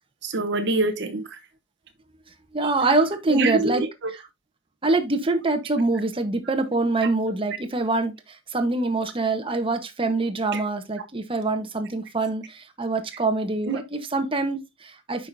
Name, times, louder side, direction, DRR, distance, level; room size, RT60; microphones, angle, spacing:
voice 1, 0.2-1.4 2.6-2.7 3.3-4.1 10.5-10.6 13.7-13.8, right 3 dB, 60° right, 1.0 m, -25 dB
voice 2, 2.5-3.8 4.8-15.3, right 2 dB, 25° right, 1.1 m, -25 dB
9.0 x 5.8 x 2.6 m
head